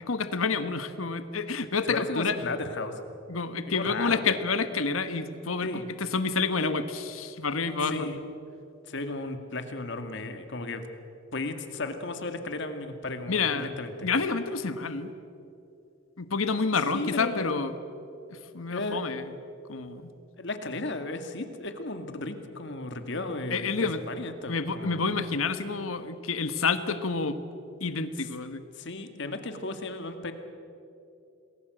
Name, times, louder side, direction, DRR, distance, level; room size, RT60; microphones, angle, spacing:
voice 1, 0.1-2.4 3.3-8.1 13.3-13.7 14.0-15.1 16.2-17.7 18.3-19.3 19.7-20.2 23.5-24.0 24.5-27.4 27.8-28.6, left 4 dB, 90° left, 10 dB, 1.3 m, -29 dB
voice 2, 1.8-2.9 3.7-4.3 5.6-5.9 7.9-8.2 8.9-10.8 11.3-14.1 16.9-17.5 18.7-19.0 20.4-25.0 28.8-30.3, left 2 dB, 60° left, 7 dB, 2.1 m, -35 dB
27.5 x 20.0 x 7.9 m, 2.7 s
head